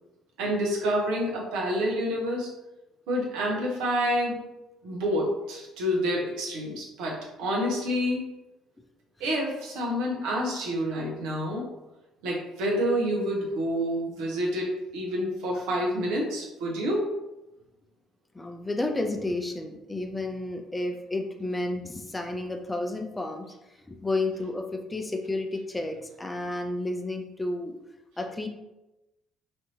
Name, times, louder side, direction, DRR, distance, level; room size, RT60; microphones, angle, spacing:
voice 1, 0.4-2.5 3.1-4.4 4.8-8.2 9.2-11.7 12.2-17.2, equal, 70° right, -2 dB, 0.8 m, -28 dB
voice 2, 18.3-23.5 23.9-27.7 28.2-28.5, left 2 dB, 15° left, 4 dB, 0.4 m, -31 dB
3.4 x 2.6 x 2.7 m, 0.98 s
hypercardioid pair, 50°, 0 cm